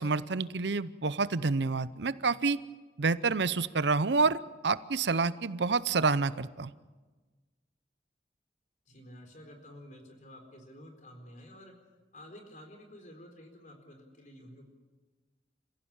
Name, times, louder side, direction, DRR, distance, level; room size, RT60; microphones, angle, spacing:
voice 1, 0.0-2.6 3.0-6.7, right 4 dB, 70° right, 16 dB, 0.7 m, -28 dB
voice 2, 8.9-11.7 12.1-14.6, equal, 45° left, 5 dB, 4.2 m, -51 dB
27.5 x 15.5 x 8.8 m, 1.3 s
head